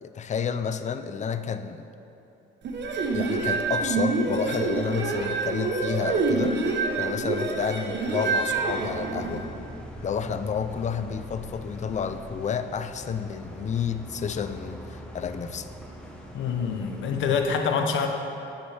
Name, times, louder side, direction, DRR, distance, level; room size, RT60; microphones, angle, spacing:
voice 1, 0.0-1.9 3.1-6.6 7.0-9.5 10.0-15.7, left 6 dB, 35° left, 10 dB, 0.4 m, -30 dB
sound 1, 2.6-9.4, right 3 dB, 60° right, 0.9 m, -27 dB
sound 2, 8.5-17.4, equal, 5° left, 1.0 m, -43 dB
voice 2, 16.3-18.1, left 6 dB, 75° left, 5 dB, 0.7 m, -26 dB
8.6 x 8.0 x 3.3 m, 2.8 s
cardioid pair, 90°, 20 cm